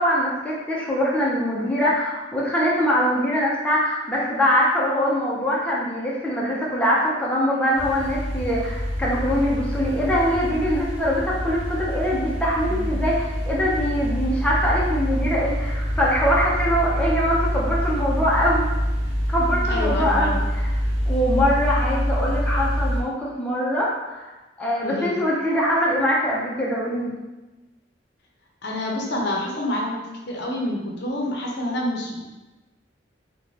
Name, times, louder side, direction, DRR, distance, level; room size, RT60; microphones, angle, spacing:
voice 1, 0.0-18.7 19.3-20.7 21.1-24.3 24.6-27.1, equal, 5° left, -6 dB, 0.4 m, -23 dB
sound 1, 7.8-23.0, equal, 80° right, 0.6 m, -26 dB
voice 2, 19.6-20.4 24.8-25.1 28.6-30.0 30.3-32.3, left 1 dB, 65° left, -1 dB, 0.5 m, -28 dB
2.4 x 2.1 x 3.1 m, 1.1 s
head